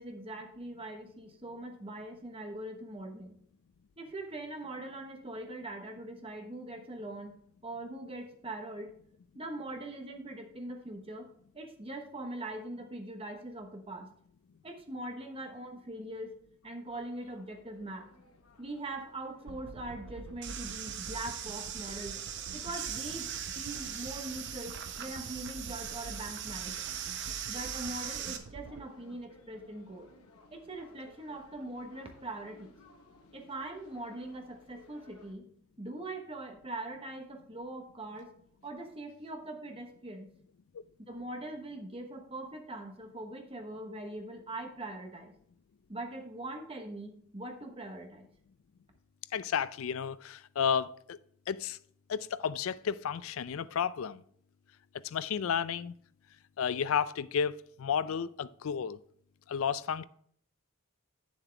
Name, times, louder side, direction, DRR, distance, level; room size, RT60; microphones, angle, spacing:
voice 1, 0.0-3.4 4.0-7.3 7.6-8.9 9.3-11.3 11.5-14.1 14.6-16.3 16.6-18.1 18.6-22.2 22.5-23.3 23.6-26.9 27.5-30.1 30.5-32.8 33.3-35.5 35.8-38.3 38.6-40.3 41.1-45.3 45.9-48.3, right 1 dB, 25° right, 1.1 m, -42 dB
sound 1, 16.9-35.4, left 1 dB, 85° left, 1.2 m, -60 dB
sound 2, 19.5-28.8, right 3 dB, 70° right, 0.5 m, -48 dB
sound 3, 20.4-28.4, right 9 dB, 55° right, 0.9 m, -40 dB
voice 2, 49.3-51.2 51.5-51.8 52.1-54.2 55.0-55.9 56.6-59.0 59.5-60.0, left 7 dB, 65° left, 0.4 m, -32 dB
9.2 x 7.2 x 3.4 m
head